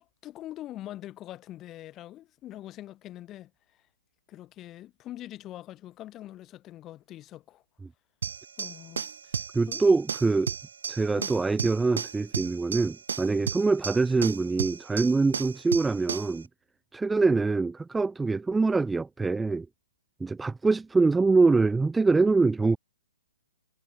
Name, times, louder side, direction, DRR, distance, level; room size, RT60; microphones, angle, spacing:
voice 1, 0.0-3.5 4.3-7.6 8.6-9.8 11.2-11.4, left 14 dB, 15° left, 1.6 m, -43 dB
sound 1, 8.2-16.4, right 6 dB, 70° right, 0.5 m, -35 dB
voice 2, 9.5-10.5 10.9-16.5 16.9-19.7 20.2-22.8, right 3 dB, 5° right, 0.3 m, -24 dB
hypercardioid pair, 175°, 0 cm